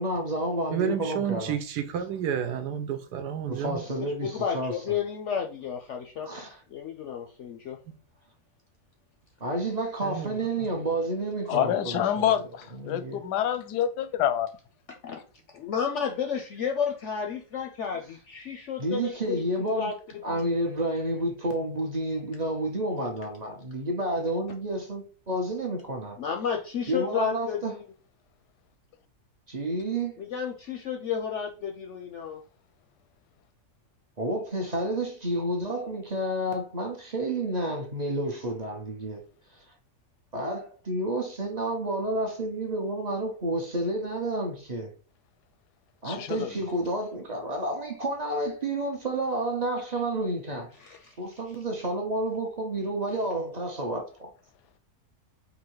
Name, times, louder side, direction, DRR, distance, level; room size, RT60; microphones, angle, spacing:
voice 1, 0.0-1.5 3.5-4.7 6.2-6.6 9.4-12.3 12.7-13.2 18.8-19.9 20.2-26.2 26.9-27.7 29.5-30.2 34.2-39.2 40.3-44.9 46.0-50.7 51.2-54.3, right 1 dB, 40° right, 0.6 m, -30 dB
voice 2, 0.7-3.8 10.0-10.3, right 8 dB, 85° right, 1.3 m, -30 dB
voice 3, 4.0-6.3 6.7-7.8 14.9-15.2 15.5-20.5 26.2-27.8 30.2-32.4 50.8-51.6, left 7 dB, 65° left, 0.7 m, -32 dB
voice 4, 11.5-14.5 46.0-46.5, left 10 dB, 85° left, 1.2 m, -27 dB
3.9 x 2.7 x 4.6 m
omnidirectional pair, 1.7 m